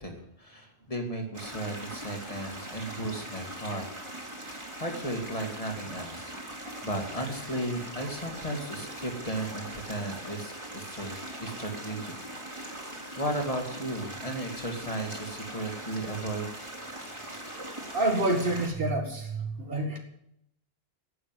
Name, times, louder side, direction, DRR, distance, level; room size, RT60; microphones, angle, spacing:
voice 1, 0.0-3.9 4.3-4.4 4.8-12.2 12.5-12.9 13.2-16.5, right 1 dB, 35° left, 2 dB, 2.2 m, -35 dB
sound 1, 1.3-18.7, right 1 dB, 30° right, 2.5 m, -41 dB
voice 2, 17.9-20.0, right 2 dB, 65° right, 3 dB, 2.2 m, -28 dB
11.5 x 8.0 x 9.1 m, 0.75 s
omnidirectional pair, 1.0 m